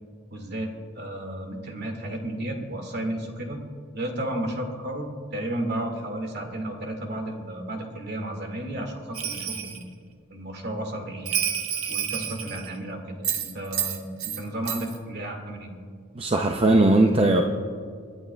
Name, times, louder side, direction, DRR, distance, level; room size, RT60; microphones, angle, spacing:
voice 1, 0.3-3.6 3.9-9.8 10.3-11.4 11.9-15.7, right 1 dB, 50° right, 2 dB, 2.1 m, -33 dB
Bell, 9.1-9.8 11.3-12.8 13.2-14.4 14.7-15.0, right 8 dB, 85° right, 1.2 m, -29 dB
voice 2, 16.1-17.4, right 2 dB, 25° right, 3 dB, 0.6 m, -19 dB
26.0 x 11.5 x 2.3 m, 2.2 s
head